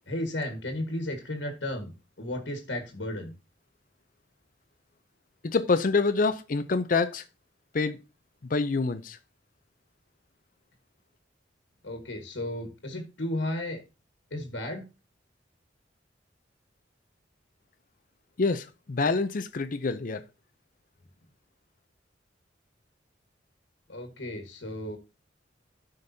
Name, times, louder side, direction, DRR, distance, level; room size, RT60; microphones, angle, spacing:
voice 1, 0.1-1.9 2.2-3.3 11.8-13.8 14.3-14.8 23.9-25.0, left 1 dB, 70° left, 1.5 m, -34 dB
voice 2, 5.5-7.2 7.7-8.0 8.5-9.2 18.4-20.2, left 4 dB, 45° left, 0.5 m, -26 dB
13.5 x 5.2 x 2.7 m
head